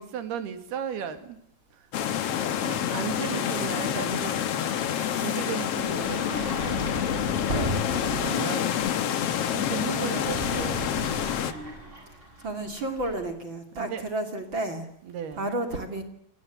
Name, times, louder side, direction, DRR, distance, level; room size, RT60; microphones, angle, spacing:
voice 1, 0.0-1.4 1.7-1.9 2.6-4.4 4.7-6.3 8.2-8.7 9.5-10.8 13.8-14.0 15.0-15.5, right 8 dB, 85° right, 9 dB, 4.1 m, -35 dB
sound 1, 1.9-11.5, left 9 dB, 65° left, 1.5 m, -28 dB
voice 2, 2.9-3.9 4.9-5.4 7.9-8.6 12.4-14.9 15.4-16.0, right 2 dB, 35° right, 6 dB, 2.9 m, -33 dB
Sliding door, 5.9-8.4 10.0-13.2, right 1 dB, 15° right, 7.0 m, -35 dB
27.0 x 18.5 x 8.4 m, 0.74 s
omnidirectional pair, 4.4 m